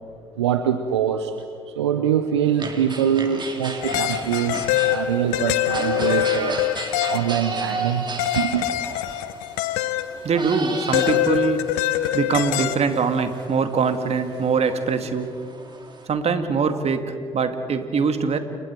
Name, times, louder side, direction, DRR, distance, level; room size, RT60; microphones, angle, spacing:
voice 1, 0.3-6.6 7.1-8.1 8.4-8.6, right 9 dB, 90° right, 9 dB, 0.8 m, -24 dB
sound 1, 2.4-16.1, right 3 dB, 35° right, 3.7 m, -34 dB
sound 2, 3.8-7.7 8.2-10.3 10.9-13.1, left 13 dB, 75° left, 0.9 m, -24 dB
voice 2, 10.2-11.7 12.1-15.3 16.1-18.4, right 5 dB, 50° right, 7 dB, 2.2 m, -23 dB
30.0 x 27.5 x 4.7 m, 2.2 s
hypercardioid pair, 50°, 14 cm